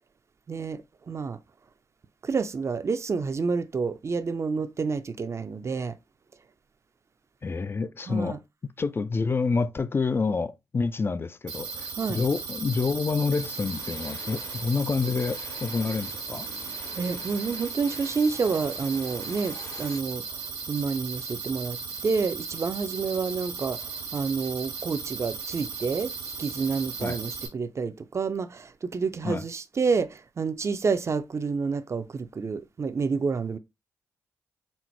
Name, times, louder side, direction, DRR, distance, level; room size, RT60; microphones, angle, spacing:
voice 1, 0.5-1.4 2.2-5.9 8.1-8.4 12.0-12.2 17.0-20.2 20.7-26.1 26.4-33.6, right 5 dB, 40° right, 0.5 m, -29 dB
voice 2, 7.4-8.4 8.8-16.5 27.0-27.2 29.2-29.5, left 4 dB, 35° left, 0.3 m, -28 dB
sound 1, 11.5-27.5, right 5 dB, 90° right, 1.3 m, -36 dB
sound 2, 13.3-20.0, left 3 dB, 60° left, 1.1 m, -46 dB
4.2 x 2.0 x 4.4 m
cardioid pair, 60°, 7 cm